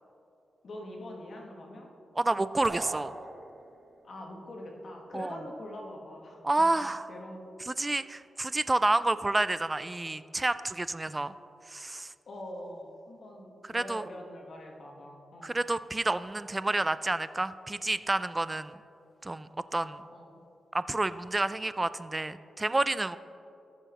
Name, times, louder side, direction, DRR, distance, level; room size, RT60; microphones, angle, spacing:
voice 1, 0.6-1.9 4.0-6.5 6.8-7.4 12.3-15.6 19.8-20.4, left 1 dB, 60° left, 0 dB, 1.3 m, -44 dB
voice 2, 2.2-3.1 5.1-5.4 6.4-7.1 7.7-11.3 11.7-12.1 13.7-14.0 15.4-18.8 19.2-20.0 20.7-23.2, right 2 dB, 25° right, 15 dB, 0.3 m, -29 dB
sound 1, 2.6-3.9, right 3 dB, 40° right, 0.8 m, -41 dB
14.5 x 7.0 x 3.0 m, 2.7 s
cardioid pair, 65°, 0 cm